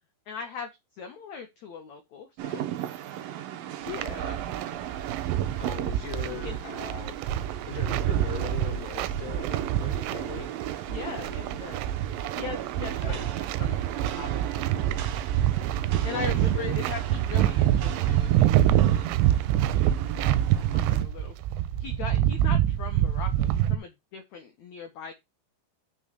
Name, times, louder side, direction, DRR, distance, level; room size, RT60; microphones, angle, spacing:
voice 1, 0.3-0.7 1.0-2.6 6.4-6.6 10.9-11.8 12.4-14.4 16.0-19.1 19.6-21.3 21.8-25.1, left 6 dB, 80° left, 1.6 m, -40 dB
Rain, 2.4-21.0, right 12 dB, 70° right, 2.4 m, -37 dB
voice 2, 3.9-4.5 5.6-7.2 7.6-10.5 13.0-13.3 15.9-16.9, left 8 dB, 30° left, 3.7 m, -39 dB
sound 1, 3.9-23.8, right 12 dB, 90° right, 2.8 m, -26 dB
6.1 x 5.4 x 6.6 m
omnidirectional pair, 4.9 m